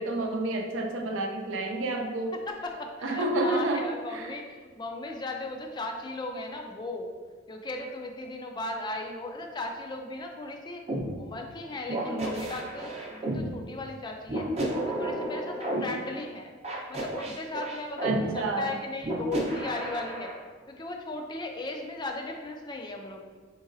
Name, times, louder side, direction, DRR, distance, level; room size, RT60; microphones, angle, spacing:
voice 1, 0.0-2.3 3.0-3.9 4.1-4.3 12.1-12.4 18.0-18.7, right 2 dB, 75° right, 3 dB, 0.5 m, -29 dB
voice 2, 2.5-7.1 7.5-10.8 11.1-14.5 14.8-16.5 16.9-20.3 20.7-23.4, left 2 dB, 20° left, 2 dB, 0.4 m, -37 dB
sound 1, 10.9-11.0 11.9-13.4 14.3-15.8 16.6-18.2 19.0-20.3, right 1 dB, 35° right, 0.7 m, -32 dB
3.9 x 3.8 x 2.6 m, 1.5 s
head